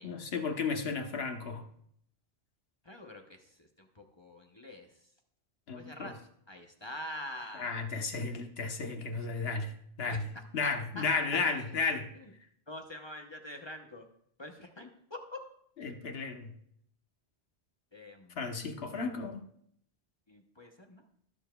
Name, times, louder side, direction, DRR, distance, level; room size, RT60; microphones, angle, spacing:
voice 1, 0.0-1.7 5.7-6.1 7.6-9.7 10.0-10.3 10.5-12.1 15.8-16.5 18.4-19.4, left 4 dB, 65° left, 5 dB, 1.2 m, -33 dB
voice 2, 2.8-4.9 5.7-6.2 6.5-7.8 9.2-9.5 10.1-10.2 10.6-11.0 11.3-11.7 12.2-12.3 12.7-14.1 14.4-15.4 17.9-18.5 20.3-21.0, left 1 dB, 25° left, 3 dB, 0.8 m, -45 dB
20.5 x 7.0 x 2.3 m, 0.68 s
omnidirectional pair, 1.1 m